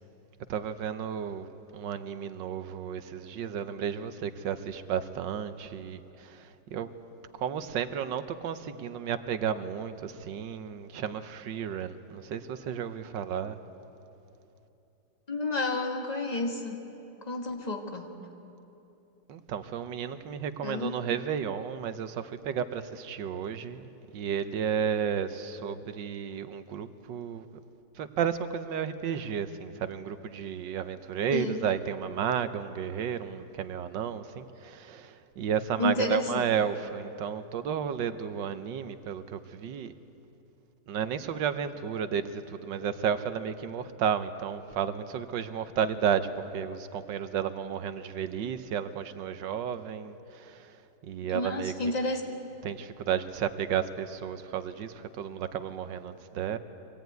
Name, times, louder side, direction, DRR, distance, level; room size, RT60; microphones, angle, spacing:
voice 1, 0.5-1.5 1.7-6.9 7.4-13.6 19.3-23.8 24.1-27.5 27.9-39.9 40.9-51.7 52.6-56.6, right 8 dB, 85° right, 10 dB, 1.6 m, -32 dB
voice 2, 15.3-16.8 17.2-18.1 20.6-21.0 31.3-31.6 35.8-36.4 51.2-52.2, left 2 dB, 20° left, 3 dB, 1.8 m, -30 dB
24.0 x 17.0 x 9.3 m, 3.0 s
omnidirectional pair, 1.9 m